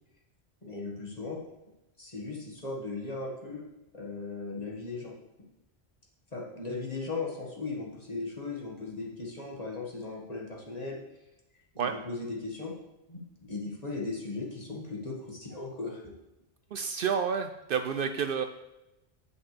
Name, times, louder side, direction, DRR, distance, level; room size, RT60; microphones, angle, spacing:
voice 1, 0.6-1.4 2.0-3.7 3.9-5.2 6.3-11.0 11.7-12.7 13.1-13.2 13.5-16.1, left 3 dB, 40° left, -2 dB, 1.8 m, -37 dB
voice 2, 16.7-18.4, right 7 dB, 65° right, 8 dB, 0.7 m, -30 dB
9.6 x 7.8 x 3.3 m, 0.95 s
omnidirectional pair, 1.1 m